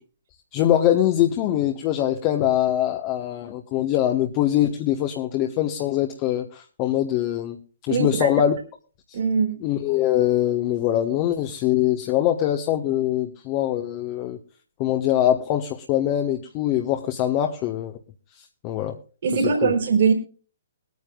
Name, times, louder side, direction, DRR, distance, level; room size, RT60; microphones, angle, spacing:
voice 1, 0.5-7.6 7.9-8.6 9.1-9.2 9.6-14.4 14.8-18.0 18.6-19.0 19.3-19.7, left 12 dB, 30° left, 1.2 m, -23 dB
voice 2, 7.9-8.3 9.1-9.6 19.2-20.1, right 5 dB, 55° right, 3.8 m, -21 dB
22.5 x 9.5 x 2.4 m
figure-of-eight pair, 125°, 0 cm